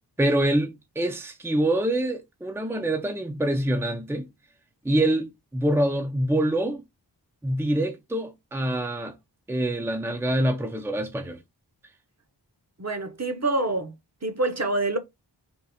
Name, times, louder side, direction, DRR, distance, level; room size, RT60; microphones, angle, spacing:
voice 1, 0.2-4.3 4.8-6.8 7.4-9.1 9.5-11.4, right 1 dB, 5° right, 0.6 m, -25 dB
voice 2, 12.8-13.9 14.2-15.0, right 2 dB, 40° right, 0.9 m, -26 dB
3.7 x 2.4 x 4.1 m
wide cardioid pair, 55°, 41 cm